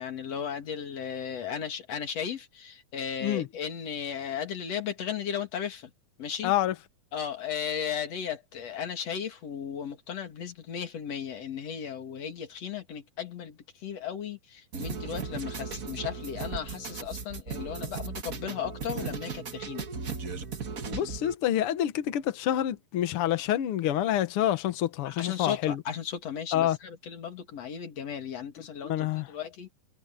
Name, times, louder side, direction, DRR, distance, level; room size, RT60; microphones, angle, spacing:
voice 1, 0.0-5.9 6.2-6.5 7.1-19.9 25.0-29.7, left 8 dB, 50° left, 3.1 m, -35 dB
voice 2, 6.4-6.7 20.9-25.8 26.5-26.8 28.8-29.3, left 12 dB, 90° left, 1.2 m, -27 dB
sound 1, 14.7-21.3, right 5 dB, 70° right, 0.8 m, -37 dB
omnidirectional pair, 4.2 m